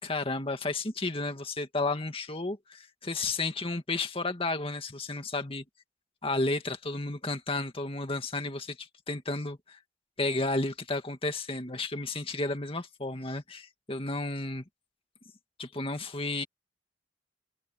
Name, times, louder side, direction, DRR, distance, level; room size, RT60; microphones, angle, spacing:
voice 1, 0.0-5.6 6.2-9.8 10.2-14.6 15.6-16.4, left 2 dB, 30° left, 2.1 m, -32 dB
head